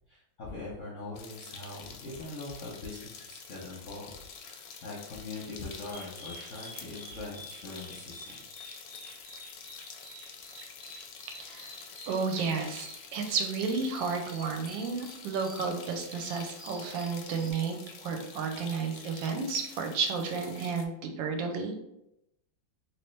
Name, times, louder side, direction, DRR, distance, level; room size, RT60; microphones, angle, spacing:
voice 1, 0.1-4.1 4.4-8.4, left 2 dB, 60° left, -5 dB, 0.8 m, -42 dB
sound 1, 1.2-20.8, left 6 dB, 85° left, 1.4 m, -48 dB
sound 2, 5.9-17.5, equal, 10° left, 0.4 m, -49 dB
voice 2, 11.3-11.7 12.1-21.7, right 5 dB, 75° right, 4 dB, 1.3 m, -32 dB
3.2 x 3.0 x 3.1 m, 0.83 s
omnidirectional pair, 2.2 m